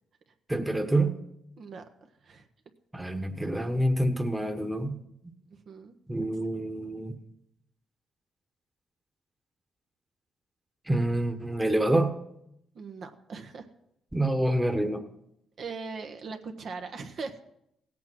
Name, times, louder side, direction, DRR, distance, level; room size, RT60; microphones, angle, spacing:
voice 1, 0.5-1.1 2.9-5.0 6.1-7.2 10.9-12.2 14.1-15.0, right 1 dB, 10° right, 6 dB, 1.3 m, -27 dB
voice 2, 12.7-13.7 15.6-17.4, right 4 dB, 60° right, 5 dB, 1.2 m, -39 dB
16.5 x 8.5 x 6.1 m, 0.80 s
cardioid pair, 90°, 0 cm